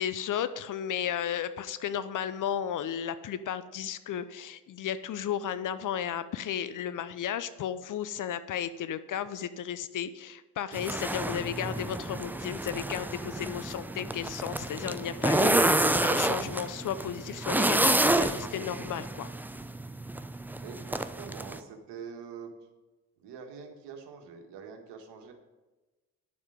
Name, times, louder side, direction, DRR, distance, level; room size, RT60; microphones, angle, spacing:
voice 1, 0.0-19.3, left 9 dB, 45° left, 13 dB, 0.6 m, -34 dB
sound 1, 10.7-21.6, right 1 dB, 5° right, 0.5 m, -29 dB
voice 2, 20.6-22.5 23.2-25.3, right 6 dB, 60° right, 4 dB, 1.6 m, -45 dB
9.6 x 7.2 x 5.0 m, 1.2 s
hypercardioid pair, 50°, 46 cm